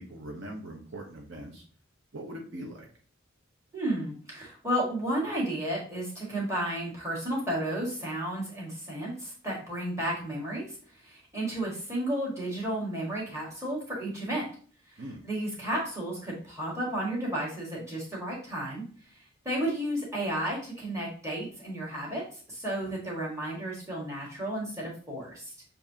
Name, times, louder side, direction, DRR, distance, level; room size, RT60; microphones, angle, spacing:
voice 1, 0.0-1.6 2.1-2.9 15.0-15.2 22.8-23.0, right 1 dB, 65° right, 0 dB, 0.8 m, -41 dB
voice 2, 3.7-10.8 11.0-14.5 14.9-18.8 19.5-25.5, right 1 dB, 15° right, -5 dB, 1.8 m, -32 dB
7.0 x 2.7 x 2.8 m, 0.43 s
head